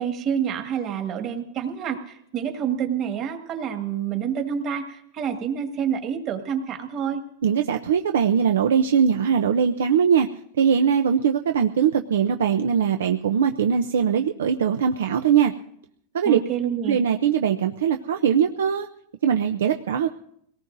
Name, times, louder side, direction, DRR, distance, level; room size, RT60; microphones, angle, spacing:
voice 1, 0.0-7.2 16.2-17.0, right 8 dB, 35° right, 5 dB, 1.8 m, -28 dB
voice 2, 7.4-10.3 10.6-15.5 16.1-16.4 16.9-18.9 19.2-20.1, right 7 dB, 90° right, 6 dB, 0.6 m, -21 dB
25.0 x 18.5 x 2.7 m, 0.70 s
supercardioid pair, 145°, 0 cm